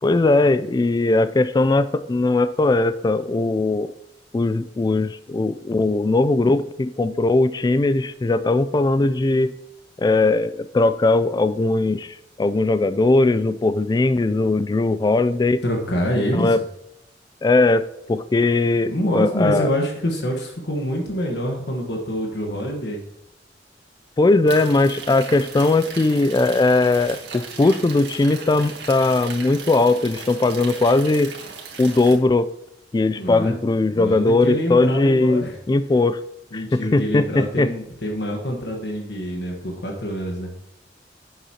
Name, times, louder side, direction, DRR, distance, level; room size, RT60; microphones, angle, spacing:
voice 1, 0.0-3.9 4.3-9.5 10.0-15.6 16.3-16.6 17.4-19.7 24.2-31.3 31.8-32.5 32.9-36.2 36.5-37.3 37.6-37.7, left 2 dB, 25° left, 14 dB, 0.3 m, -19 dB
voice 2, 15.6-16.5 18.9-23.0 33.1-33.5 33.9-35.6 36.5-40.5, equal, 70° left, 1 dB, 1.3 m, -26 dB
sound 1, 24.5-32.1, right 5 dB, 70° right, 1.8 m, -37 dB
11.0 x 7.9 x 2.9 m, 0.87 s
head